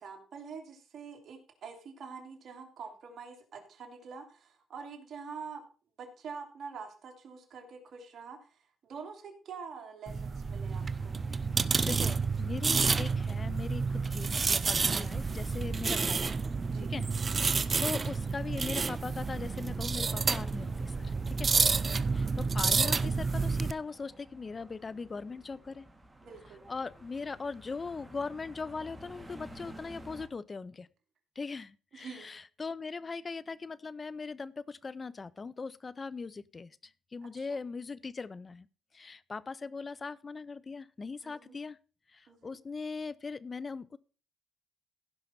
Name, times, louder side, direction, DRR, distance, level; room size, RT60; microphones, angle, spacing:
voice 1, 0.0-5.6 6.0-11.1 16.6-16.9 21.5-21.9 26.2-26.6 31.9-32.3 37.3-37.6 41.2-41.6 42.3-42.6, right 5 dB, 55° right, 2.7 m, -46 dB
sound 1, 10.1-23.7, right 4 dB, 35° right, 0.5 m, -30 dB
sound 2, 10.7-30.3, right 1 dB, 10° right, 1.9 m, -52 dB
voice 2, 11.8-16.3 16.8-21.5 22.1-25.8 26.7-30.9 31.4-38.7 38.9-41.8 42.1-44.0, left 4 dB, 30° left, 0.5 m, -40 dB
16.0 x 5.7 x 4.2 m
cardioid pair, 90°, 0 cm